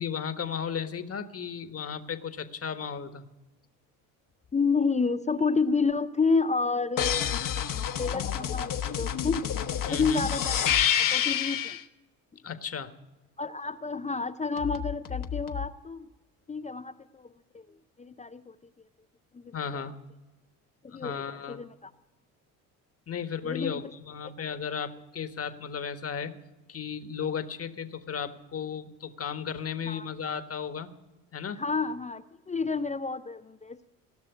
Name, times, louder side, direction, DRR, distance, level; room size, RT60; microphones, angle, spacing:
voice 1, 0.0-3.2 9.9-10.3 12.4-12.9 19.5-20.0 20.9-21.6 23.1-26.3 26.7-30.9 31.3-31.6, left 7 dB, 35° left, 9 dB, 1.4 m, -35 dB
voice 2, 4.5-7.3 8.0-9.5 9.9-10.7 11.0-11.8 13.4-16.1 16.5-17.3 17.5-18.5 19.3-19.6 20.8-21.9 23.4-23.8 29.9-30.1 31.6-33.9, left 4 dB, 15° left, 10 dB, 0.5 m, -30 dB
sound 1, 7.0-11.8 14.6-15.6, left 9 dB, 50° left, 1.2 m, -28 dB
18.0 x 6.2 x 9.2 m, 1.1 s
supercardioid pair, 75°, 42 cm